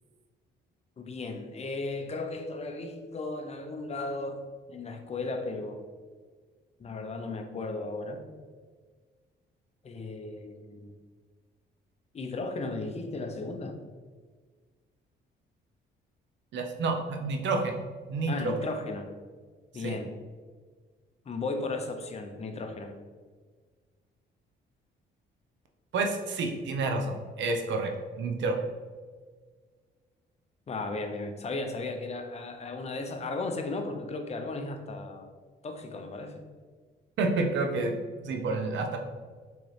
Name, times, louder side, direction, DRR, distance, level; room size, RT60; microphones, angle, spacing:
voice 1, 1.0-4.4 4.7-5.8 6.8-8.2 9.8-10.9 12.1-13.7 18.3-19.1 19.7-20.1 21.3-22.9 30.7-35.3 35.6-36.4, left 3 dB, 35° left, 5 dB, 0.6 m, -35 dB
voice 2, 16.5-17.8 18.1-18.5 19.8-19.9 25.9-27.9 28.2-28.6 37.2-38.0 38.2-39.0, right 3 dB, 70° right, 3 dB, 0.6 m, -29 dB
3.7 x 3.0 x 3.2 m, 1.5 s
cardioid pair, 90°, 20 cm